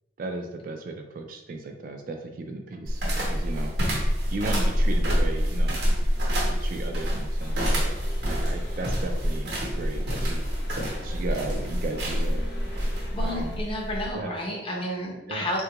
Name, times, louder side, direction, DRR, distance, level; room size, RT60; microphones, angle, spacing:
voice 1, 0.2-3.0 3.3-3.8 4.3-5.8 6.6-8.0 8.3-9.5 9.8-10.5 11.0-12.5 13.2-13.6 14.1-14.3 15.3-15.5, right 2 dB, 50° right, 4 dB, 0.3 m, -35 dB
sound 1, 2.9-14.1, equal, 75° right, 0.8 m, -26 dB
sound 2, 7.4-13.6, equal, 65° left, 0.7 m, -41 dB
voice 2, 13.1-15.6, left 1 dB, 30° left, -2 dB, 0.7 m, -31 dB
3.5 x 2.3 x 2.9 m, 0.98 s
head